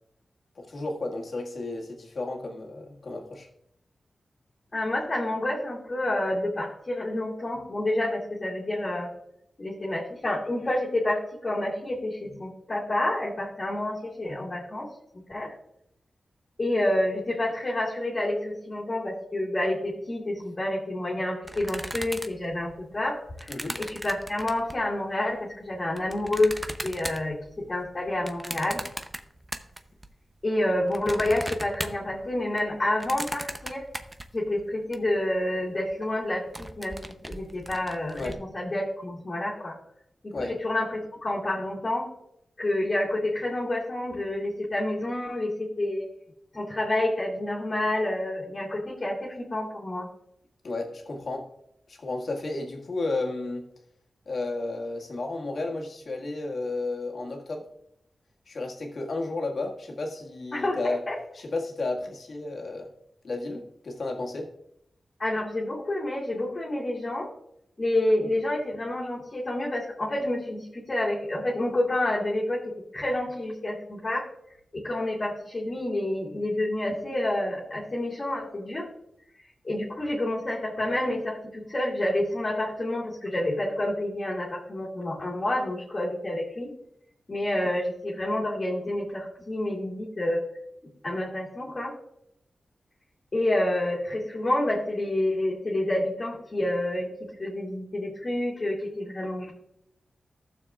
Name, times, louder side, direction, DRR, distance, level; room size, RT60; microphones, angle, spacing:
voice 1, 0.6-3.5 23.5-23.8 38.1-38.4 40.3-40.5 50.6-51.5 51.9-53.7 54.3-57.7 58.5-61.0 61.3-62.9 63.2-64.5, left 2 dB, 60° left, 0 dB, 1.8 m, -32 dB
voice 2, 4.7-9.1 9.6-14.9 15.3-15.5 16.6-26.5 26.8-28.8 30.4-33.9 34.3-37.0 37.3-39.8 40.2-42.1 42.6-46.0 46.5-50.1 60.5-61.2 65.2-67.3 67.8-74.2 74.7-78.9 79.6-86.7 87.3-90.4 91.0-91.9 93.3-99.5, left 1 dB, 35° left, -6 dB, 2.2 m, -28 dB
sound 1, 21.4-24.9 25.5-30.1 30.4-35.0 35.3-35.4 35.6-35.9 36.3-38.3, right 1 dB, 15° right, 0.7 m, -38 dB
15.5 x 6.9 x 2.4 m, 0.76 s
wide cardioid pair, 110°, 0 cm